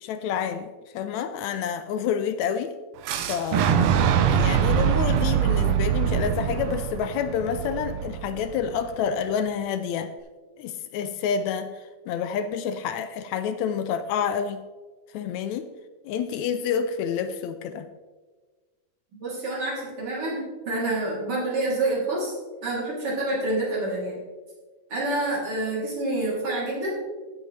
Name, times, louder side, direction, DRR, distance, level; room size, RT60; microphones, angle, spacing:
voice 1, 0.0-2.7 3.3-3.8 4.2-10.1 10.6-14.6 15.1-15.7 16.1-17.9, left 7 dB, 80° left, 10 dB, 1.8 m, -28 dB
Fire / Explosion, 3.0-8.9, right 8 dB, 80° right, 1.3 m, -23 dB
voice 2, 19.2-22.3 22.6-24.2 24.9-26.9, right 2 dB, 50° right, -5 dB, 3.9 m, -27 dB
15.5 x 7.5 x 3.2 m, 1.3 s
omnidirectional pair, 3.3 m